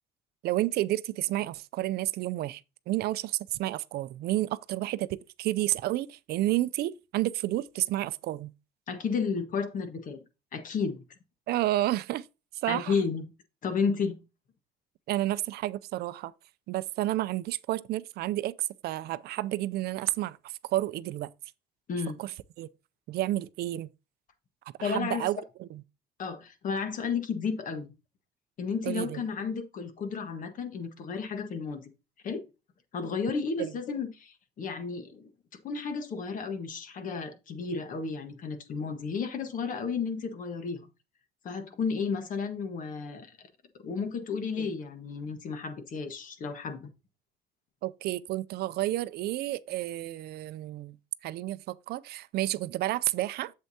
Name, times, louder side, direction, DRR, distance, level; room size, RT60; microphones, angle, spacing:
voice 1, 0.4-2.6 2.9-8.5 11.5-12.3 12.6-13.0 15.1-16.3 16.7-21.3 22.2-22.7 23.1-23.9 24.8-25.8 28.8-29.2 33.6-33.7 44.6-44.7 47.8-51.0 51.2-53.5, right 15 dB, 70° right, 0.4 m, -31 dB
voice 2, 8.9-10.2 10.5-11.0 12.7-13.2 13.6-14.1 21.9-22.2 24.8-25.3 26.2-27.9 28.6-31.8 32.2-32.4 32.9-35.3 35.6-40.9 41.4-43.3 43.8-46.9, left 5 dB, 50° left, 1.4 m, -32 dB
7.8 x 7.5 x 2.8 m
cardioid pair, 110°, 17 cm